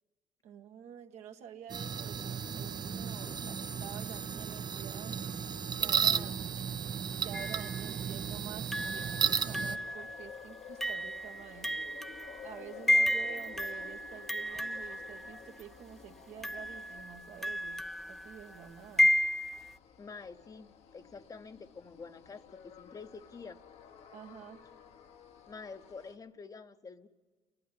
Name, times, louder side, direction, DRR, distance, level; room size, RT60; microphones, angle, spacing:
voice 1, 0.4-5.2 5.8-6.3 7.2-12.0 12.4-17.8 18.1-19.1 24.1-24.6, right 9 dB, 75° right, 4 dB, 1.6 m, -49 dB
sound 1, 1.7-9.8, right 7 dB, 35° right, 0.6 m, -34 dB
sound 2, 7.3-7.9 8.7-15.6 16.4-19.8, equal, ahead, 0.7 m, -33 dB
sound 3, 8.7-26.2, left 8 dB, 65° left, 1.2 m, -53 dB
voice 2, 20.0-23.6 25.5-27.1, left 4 dB, 30° left, 10 dB, 0.9 m, -48 dB
29.5 x 12.0 x 9.9 m, 1.4 s
cardioid pair, 105°, 12 cm